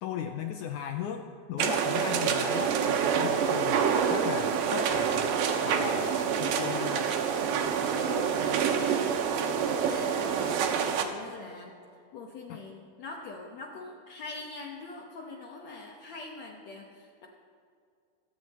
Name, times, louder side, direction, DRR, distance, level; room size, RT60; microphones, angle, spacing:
voice 1, 0.0-5.4 5.6-7.1 12.5-12.6, left 9 dB, 90° left, 5 dB, 1.7 m, -37 dB
sound 1, 1.6-11.0, right 7 dB, 75° right, 2.4 m, -27 dB
voice 2, 8.0-10.7 11.0-11.7 12.1-17.3, left 3 dB, 65° left, -1 dB, 1.9 m, -43 dB
24.5 x 8.5 x 4.2 m, 2.3 s
omnidirectional pair, 4.2 m